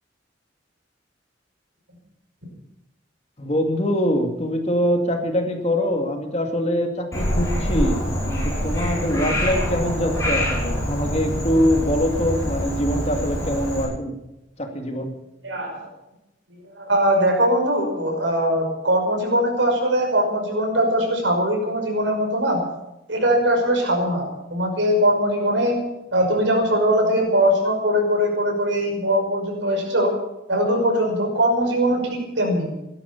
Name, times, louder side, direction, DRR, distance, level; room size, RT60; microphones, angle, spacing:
voice 1, 3.4-14.2 14.6-15.1, equal, 35° left, 4 dB, 2.3 m, -23 dB
Frog, 7.1-13.8, equal, 15° left, 7.0 m, -25 dB
voice 2, 15.4-15.9 16.7-22.6 23.1-25.8 26.1-30.1 30.5-32.7, equal, 85° right, 2 dB, 5.8 m, -21 dB
16.5 x 12.5 x 7.1 m, 0.92 s
head